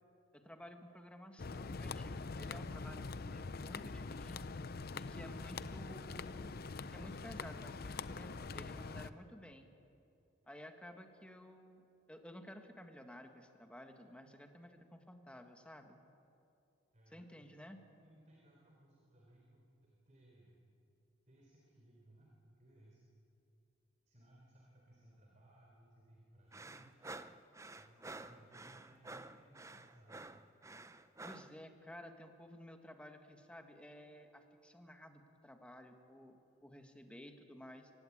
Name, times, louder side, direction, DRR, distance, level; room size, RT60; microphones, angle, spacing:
voice 1, 0.3-4.5 4.9-6.4 6.9-9.7 10.5-16.0 17.1-17.8 31.2-37.9, equal, 5° left, 5 dB, 1.7 m, -54 dB
sound 1, 1.4-9.1, left 4 dB, 55° left, 0.7 m, -44 dB
voice 2, 16.9-17.3 18.0-20.6 21.3-23.0 24.1-27.0 27.7-30.4, right 1 dB, 40° right, -2 dB, 3.9 m, -64 dB
sound 2, 26.5-31.5, right 2 dB, 15° right, 0.6 m, -50 dB
24.5 x 18.0 x 8.7 m, 2.6 s
head